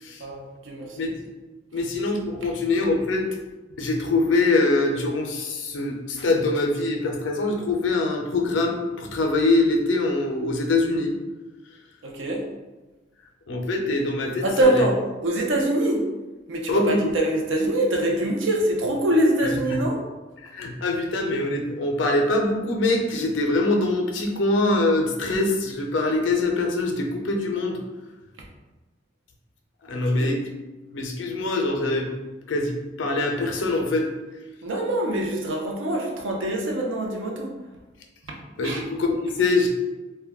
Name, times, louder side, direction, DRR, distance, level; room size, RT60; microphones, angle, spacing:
voice 1, 0.2-0.9 12.0-12.4 14.4-15.0 15.2-16.1 16.5-20.0 29.9-30.3 34.6-37.5 38.6-38.8, right 1 dB, 80° right, 0 dB, 0.5 m, -24 dB
voice 2, 1.0-1.3 1.7-3.3 3.8-11.1 13.5-14.9 16.7-17.1 19.4-19.8 20.4-27.8 29.9-30.4 30.9-32.1 32.5-34.1 38.5-39.7, left 2 dB, 75° left, 2 dB, 0.5 m, -24 dB
2.2 x 2.1 x 3.4 m, 1.2 s
head